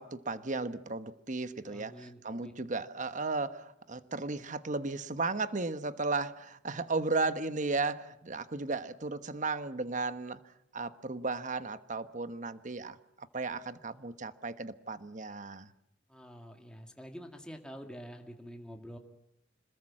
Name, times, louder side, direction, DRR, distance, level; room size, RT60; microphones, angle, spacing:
voice 1, 0.0-10.4 10.7-15.7, right 3 dB, 45° right, 1.2 m, -35 dB
voice 2, 1.6-2.5 16.1-19.0, equal, 5° left, 2.1 m, -47 dB
27.0 x 21.0 x 7.5 m
head